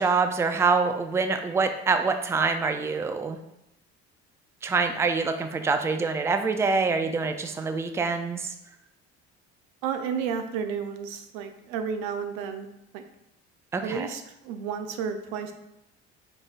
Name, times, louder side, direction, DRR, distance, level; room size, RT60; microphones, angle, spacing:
voice 1, 0.0-3.4 4.6-8.5 13.7-14.1, right 4 dB, 10° right, 7 dB, 0.3 m, -25 dB
voice 2, 9.8-13.1 13.8-15.5, right 6 dB, 90° right, 7 dB, 0.5 m, -32 dB
3.9 x 3.8 x 2.4 m, 0.85 s
supercardioid pair, 80°, 29 cm